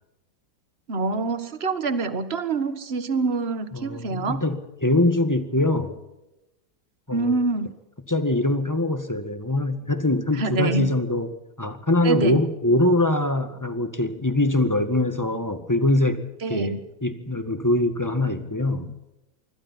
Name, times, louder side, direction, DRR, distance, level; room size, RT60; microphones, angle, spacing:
voice 1, 0.9-4.4 7.1-7.7 10.4-10.9 12.0-12.4 16.4-16.8, right 3 dB, 35° right, 11 dB, 1.7 m, -25 dB
voice 2, 3.7-5.9 7.1-7.3 8.1-11.3 11.6-16.2 16.5-18.9, left 1 dB, 10° left, 8 dB, 1.7 m, -23 dB
26.5 x 23.5 x 4.4 m, 0.96 s
omnidirectional pair, 1.9 m